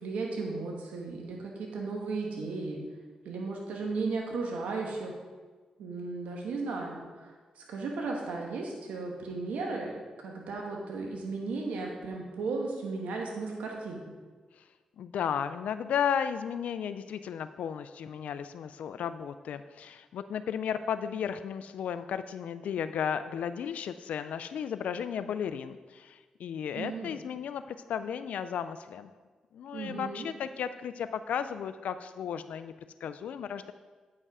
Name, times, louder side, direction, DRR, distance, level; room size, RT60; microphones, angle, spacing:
voice 1, 0.0-2.8 3.2-5.2 5.8-9.9 10.2-14.1 26.8-27.1 29.7-30.3, right 3 dB, 90° right, 0 dB, 1.2 m, -35 dB
voice 2, 15.0-27.6 27.9-29.1 29.5-32.7 33.0-33.7, left 8 dB, 80° left, 11 dB, 0.3 m, -34 dB
8.6 x 5.4 x 4.8 m, 1.4 s
cardioid pair, 60°, 2 cm